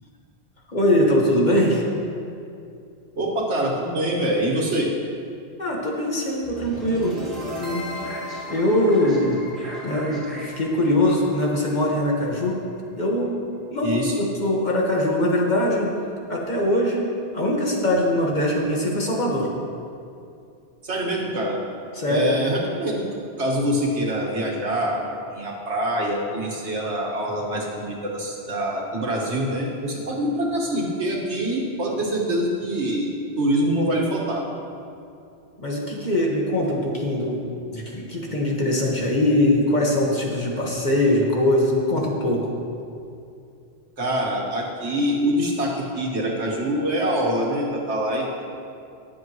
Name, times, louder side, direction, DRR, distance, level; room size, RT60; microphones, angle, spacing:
voice 1, 0.7-1.8 5.6-7.2 7.6-7.8 8.5-9.4 9.8-12.6 13.0-13.4 13.7-15.9 16.3-17.1 17.3-19.5 21.9-22.3 35.6-42.5, left 1 dB, 45° left, -2 dB, 1.6 m, -22 dB
voice 2, 3.2-4.9 13.8-14.2 20.8-21.6 22.1-23.1 23.4-33.1 33.4-34.4 44.0-48.4, right 1 dB, 90° right, -1 dB, 1.9 m, -25 dB
sound 1, 6.4-12.5, equal, 55° right, 2.8 m, -36 dB
20.0 x 7.2 x 3.1 m, 2.5 s
omnidirectional pair, 1.1 m